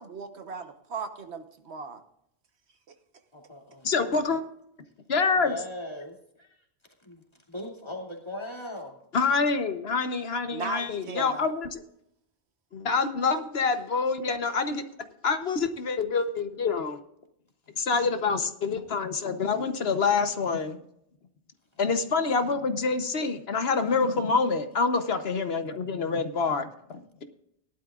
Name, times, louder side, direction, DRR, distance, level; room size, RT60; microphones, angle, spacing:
voice 1, 0.0-2.0 2.9-3.0 10.5-11.4, right 4 dB, 75° right, 7 dB, 1.4 m, -37 dB
voice 2, 3.3-4.4 5.3-6.7 7.0-9.0 15.7-15.8 16.5-16.7, left 1 dB, 25° left, 0 dB, 2.6 m, -40 dB
voice 3, 3.8-4.4 5.1-5.5 9.1-11.8 12.7-14.8 15.2-17.0 17.8-20.8 21.8-27.2, left 4 dB, 70° left, 8 dB, 1.2 m, -26 dB
18.5 x 12.0 x 2.4 m, 0.76 s
omnidirectional pair, 1.1 m